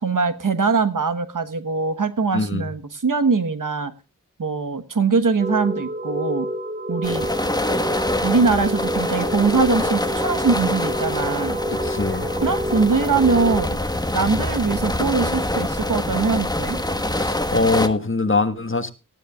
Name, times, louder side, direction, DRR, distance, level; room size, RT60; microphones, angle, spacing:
voice 1, 0.0-3.9 4.4-6.5 6.9-7.3 8.2-11.6 12.4-13.8 14.1-16.8, right 4 dB, 75° right, 10 dB, 1.2 m, -22 dB
voice 2, 2.3-2.6 11.7-12.3 17.1-18.9, left 3 dB, 40° left, 10 dB, 1.4 m, -22 dB
sound 1, 5.4-13.6, equal, 35° right, 2.7 m, -28 dB
sound 2, 7.0-17.9, left 1 dB, 10° left, 1.3 m, -25 dB
19.0 x 12.5 x 2.4 m, 0.29 s
wide cardioid pair, 60°, 32 cm